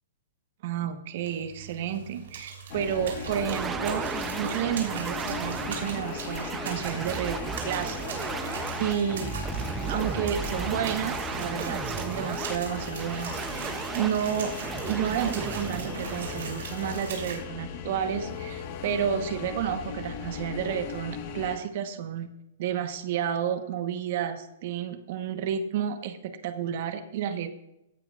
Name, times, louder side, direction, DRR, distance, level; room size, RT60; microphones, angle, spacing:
voice 1, 0.6-4.1 4.3-9.3 9.9-14.5 14.8-22.3 22.6-27.5, right 9 dB, 55° right, 9 dB, 1.1 m, -31 dB
sound 1, 1.2-17.4, right 5 dB, 75° right, 3.5 m, -41 dB
sound 2, 2.7-21.6, left 6 dB, 45° left, 1.4 m, -38 dB
sound 3, 3.3-17.2, right 6 dB, 15° right, 0.6 m, -35 dB
16.5 x 9.0 x 2.4 m, 0.86 s
hypercardioid pair, 140°, 0 cm